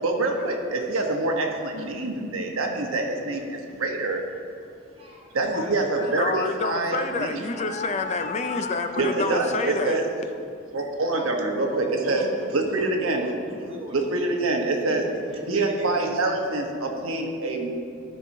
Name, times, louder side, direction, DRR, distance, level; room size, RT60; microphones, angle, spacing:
voice 1, 0.0-4.2 5.3-7.4 9.0-10.0 10.7-12.2 12.5-13.3 13.9-15.0 15.5-17.7, right 2 dB, 85° right, 2 dB, 1.0 m, -26 dB
voice 2, 4.7-6.1 11.5-14.0 14.7-16.0, right 1 dB, 30° right, -2 dB, 1.1 m, -38 dB
voice 3, 6.0-10.0 11.2-11.3, left 4 dB, 35° left, 7 dB, 0.4 m, -28 dB
13.5 x 5.5 x 2.7 m, 2.3 s
head